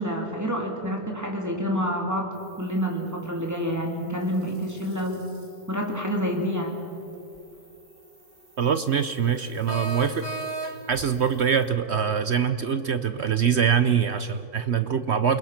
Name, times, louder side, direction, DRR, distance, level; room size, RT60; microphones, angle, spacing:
voice 1, 0.0-5.2 5.7-6.8, equal, 10° right, 1 dB, 2.9 m, -28 dB
sound 1, 2.3-11.7, right 1 dB, 85° right, 6.9 m, -56 dB
sound 2, 7.4-7.5 9.7-11.1, right 3 dB, 25° left, 2.1 m, -33 dB
voice 2, 8.6-10.3 10.9-15.4, right 7 dB, 60° right, 11 dB, 0.7 m, -24 dB
28.5 x 20.5 x 5.9 m, 2.7 s
omnidirectional pair, 1.8 m